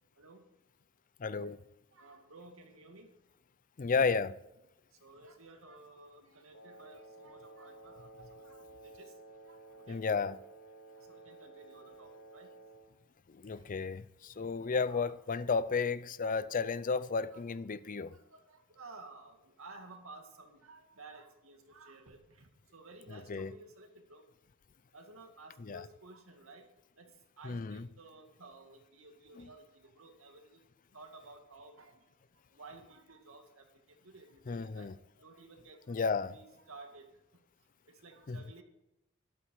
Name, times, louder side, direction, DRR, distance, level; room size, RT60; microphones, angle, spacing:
voice 1, 1.2-1.6 3.8-4.3 9.9-10.4 13.3-18.1 23.1-23.5 25.6-25.8 27.4-27.9 29.4-29.5 34.5-34.9 35.9-36.3 38.3-38.4, left 5 dB, 40° left, 0.5 m, -33 dB
voice 2, 1.9-3.1 5.0-9.1 9.5-9.6 9.9-10.0 11.0-12.5 14.9-15.1 16.9-17.1 17.3-17.4 18.1-24.2 24.9-26.6 27.0-30.6 30.9-31.9 32.5-33.7 34.0-34.9 35.2-35.8 36.2-37.1 38.0-38.6, right 3 dB, 90° right, 2.2 m, -54 dB
Wind instrument woodwind instrument, 6.5-13.0, right 2 dB, 75° left, 1.7 m, -54 dB
13.0 x 12.0 x 4.7 m
head